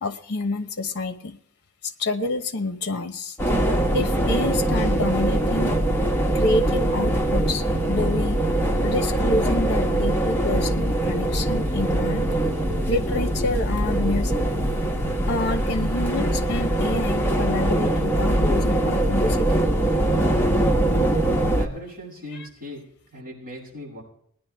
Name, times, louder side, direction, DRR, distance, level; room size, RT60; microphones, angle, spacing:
voice 1, 0.0-1.4 1.8-3.4 3.9-5.8 6.3-8.4 8.8-12.2 12.9-14.4 15.3-19.6 22.3-22.5, left 2 dB, 50° left, 8 dB, 1.0 m, -28 dB
sound 1, 3.4-21.7, right 1 dB, 10° left, 1.2 m, -22 dB
voice 2, 21.4-22.8 23.1-24.0, equal, 40° right, -5 dB, 7.4 m, -38 dB
20.0 x 10.0 x 3.5 m, 0.67 s
head